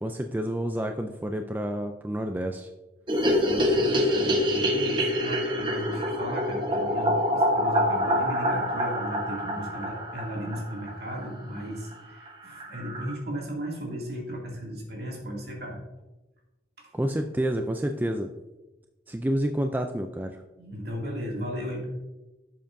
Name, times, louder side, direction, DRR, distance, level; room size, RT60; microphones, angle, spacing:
voice 1, 0.0-2.7 16.9-18.3 19.1-20.4, right 1 dB, 10° right, 5 dB, 0.3 m, -29 dB
sound 1, 3.1-11.3 11.6-11.7 11.9-12.0 12.3-12.4 12.6-13.1, equal, 25° right, 1.0 m, -26 dB
voice 2, 3.4-15.8 16.8-16.9 20.6-21.9, equal, 65° right, -2 dB, 2.5 m, -35 dB
11.5 x 7.5 x 2.6 m, 1.1 s
head